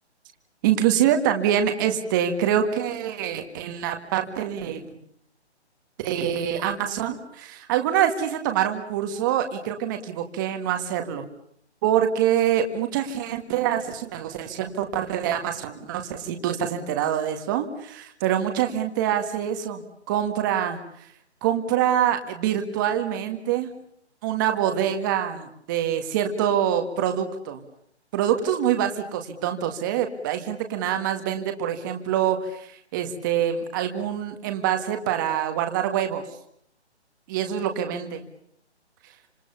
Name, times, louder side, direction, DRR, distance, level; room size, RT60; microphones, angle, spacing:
voice 1, 0.6-4.8 6.0-11.3 11.8-21.1 21.4-23.7 24.2-27.6 28.1-36.2 37.3-38.2, right 10 dB, 20° right, 6 dB, 1.8 m, -25 dB
28.0 x 27.0 x 7.0 m, 0.69 s
hypercardioid pair, 165°, 34 cm